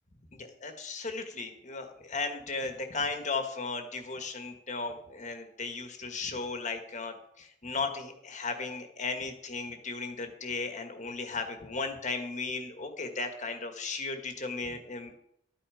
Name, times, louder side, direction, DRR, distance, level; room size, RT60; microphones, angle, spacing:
voice 1, 0.3-15.2, left 4 dB, 40° left, 6 dB, 1.7 m, -36 dB
12.5 x 9.2 x 5.1 m, 0.72 s
head